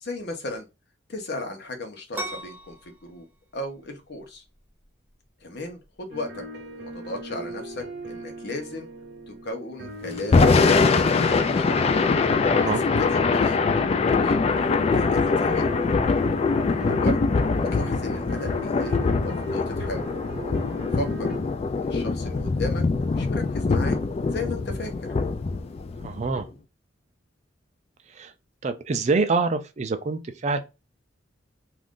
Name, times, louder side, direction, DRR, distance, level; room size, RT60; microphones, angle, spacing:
voice 1, 0.0-0.6 1.1-3.3 3.5-4.4 5.4-6.4 6.8-8.9 9.3-11.9 12.6-13.6 14.2-15.7 16.7-17.2 17.6-20.1 20.9-21.3 21.8-22.8 23.1-24.0 24.3-24.9, left 1 dB, 60° left, 0.8 m, -35 dB
sound 1, 2.1-9.5, right 1 dB, 10° right, 0.8 m, -43 dB
sound 2, 6.1-21.4, right 1 dB, 65° right, 0.8 m, -39 dB
Thunder / Rain, 10.2-26.4, left 4 dB, 35° left, 0.3 m, -23 dB
voice 2, 12.5-12.8 26.0-26.5 28.2-28.3 28.6-30.6, right 4 dB, 40° right, 0.4 m, -25 dB
2.5 x 2.4 x 3.5 m
head